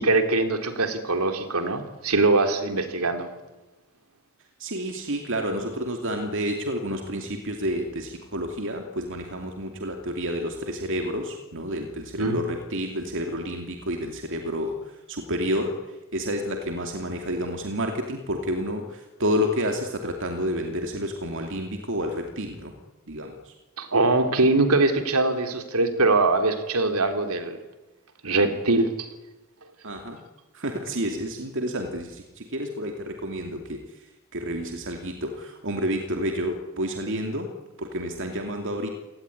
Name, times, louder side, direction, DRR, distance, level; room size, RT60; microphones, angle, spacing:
voice 1, 0.0-3.3 12.2-12.4 23.8-27.6 28.2-29.1, right 2 dB, 75° right, 7 dB, 3.4 m, -22 dB
voice 2, 4.6-15.8 16.1-22.7 23.1-23.5 29.8-30.2 30.5-33.8 34.3-37.5 37.8-38.9, equal, 60° right, 4 dB, 2.6 m, -30 dB
28.0 x 18.5 x 9.9 m, 1.1 s
head